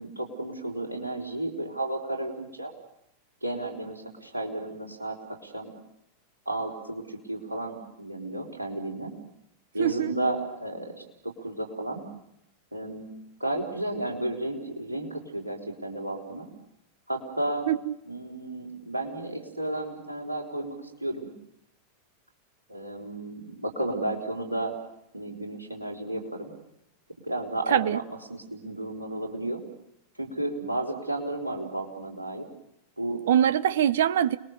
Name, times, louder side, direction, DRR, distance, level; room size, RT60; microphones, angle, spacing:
voice 1, 0.0-2.7 3.4-5.7 6.4-9.1 9.7-12.0 12.7-13.1 13.4-16.5 17.1-17.7 18.1-21.3 22.7-24.8 25.1-26.5 27.2-28.0 28.3-29.6 30.2-32.5 33.0-33.2, right 1 dB, 80° right, 4.6 m, -33 dB
voice 2, 9.8-10.1 17.7-17.9 27.7-28.0 33.3-34.4, right 10 dB, 60° right, 0.8 m, -23 dB
30.0 x 21.0 x 6.8 m
figure-of-eight pair, 90°, 0 cm